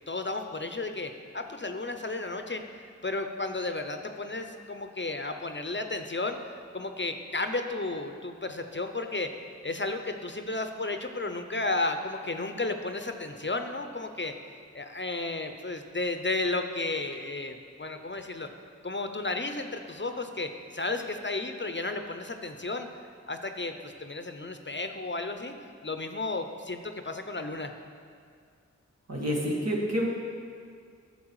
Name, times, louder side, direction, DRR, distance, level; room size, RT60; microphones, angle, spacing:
voice 1, 0.1-2.6 3.0-6.4 6.7-14.3 14.7-18.5 18.8-22.9 23.3-25.5 25.8-27.7, left 2 dB, 40° left, 6 dB, 0.7 m, -33 dB
voice 2, 29.1-30.1, equal, 60° right, -3 dB, 2.0 m, -28 dB
13.0 x 6.9 x 4.8 m, 2.1 s
wide cardioid pair, 45°, 29 cm